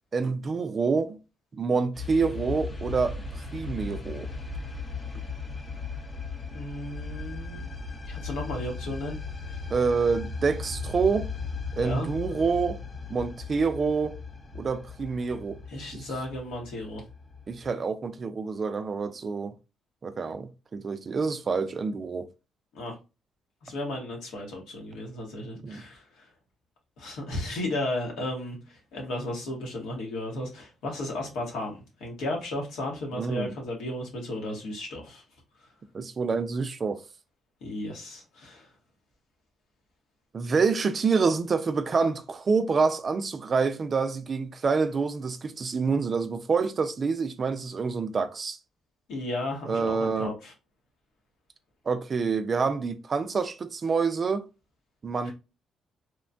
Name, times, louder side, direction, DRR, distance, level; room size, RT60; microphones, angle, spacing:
voice 1, 0.1-1.2 1.6-4.3 9.7-11.3 11.7-12.8 13.1-14.2 14.5-15.6 15.9-16.1 17.5-19.5 20.0-22.3 25.6-25.8 33.1-33.5 35.9-37.0 40.3-48.6 49.7-50.3 51.9-54.4 55.0-55.3, right 5 dB, 40° right, 0.4 m, -27 dB
sound 1, 1.9-17.7, left 4 dB, 25° left, 0.6 m, -37 dB
voice 2, 6.5-7.7 8.1-9.2 9.5-9.6 11.8-12.1 15.7-17.0 22.7-22.9 23.6-26.3 27.0-35.2 37.6-38.7 49.1-50.5, left 1 dB, 85° left, 1.1 m, -34 dB
3.0 x 2.1 x 2.5 m
cardioid pair, 90°, 0 cm